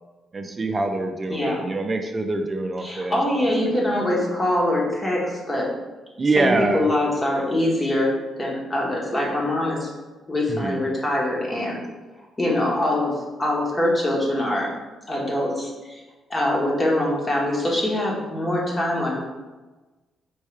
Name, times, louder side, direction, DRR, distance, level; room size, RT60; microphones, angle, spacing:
voice 1, 0.3-3.2 3.6-4.0 6.2-6.9 10.5-10.8, right 2 dB, 30° right, 5 dB, 0.5 m, -25 dB
voice 2, 1.3-1.6 2.8-5.7 6.4-9.9 10.3-11.8 12.4-13.1 13.4-14.7 15.1-16.0 16.3-19.2, left 1 dB, 25° left, -3 dB, 1.3 m, -23 dB
4.6 x 3.1 x 3.3 m, 1.2 s
cardioid pair, 90°, 0 cm